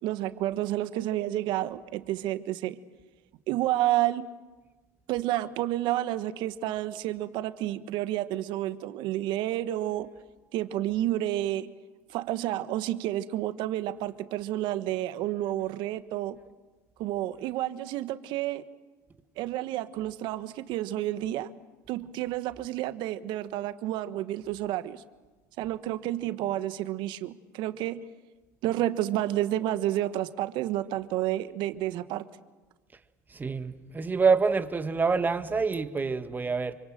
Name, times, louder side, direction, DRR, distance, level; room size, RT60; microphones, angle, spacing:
voice 1, 0.0-2.8 3.5-4.3 5.1-10.1 10.5-11.7 12.1-16.4 17.0-18.6 19.4-21.5 21.9-25.0 25.6-28.0 28.6-32.2, right 14 dB, 60° right, 1.5 m, -30 dB
voice 2, 33.3-36.7, right 4 dB, 20° right, 1.9 m, -26 dB
27.5 x 25.0 x 7.8 m
hypercardioid pair, 85°, 9 cm